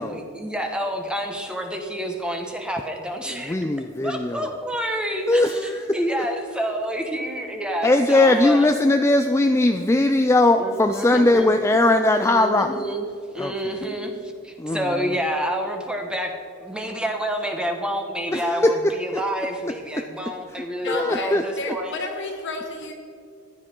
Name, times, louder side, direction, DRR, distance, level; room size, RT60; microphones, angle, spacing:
voice 1, 0.0-3.5 4.0-8.7 10.6-11.5 12.2-13.0 13.3-14.1 14.4-16.3 16.6-22.0, equal, 5° right, 3 dB, 1.1 m, -28 dB
voice 2, 3.3-4.5 5.3-6.0 7.8-12.7 13.4-13.5 14.6-15.1 18.3-18.8 20.9-21.4, left 2 dB, 10° left, 6 dB, 0.4 m, -19 dB
voice 3, 20.8-22.9, left 3 dB, 55° left, 3 dB, 2.1 m, -31 dB
15.0 x 11.0 x 4.5 m, 2.4 s
head